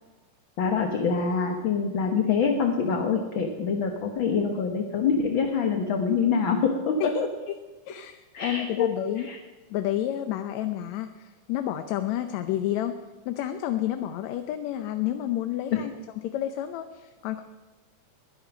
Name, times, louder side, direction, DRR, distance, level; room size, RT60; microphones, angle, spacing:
voice 1, 0.6-7.3 8.3-8.9 9.2-9.4 15.7-15.8, left 5 dB, 50° left, 4 dB, 1.6 m, -25 dB
voice 2, 7.9-9.3 9.7-12.9 13.3-15.9 16.2-17.4, left 12 dB, 75° left, 8 dB, 1.9 m, -30 dB
21.5 x 10.5 x 6.0 m, 1.3 s
omnidirectional pair, 3.4 m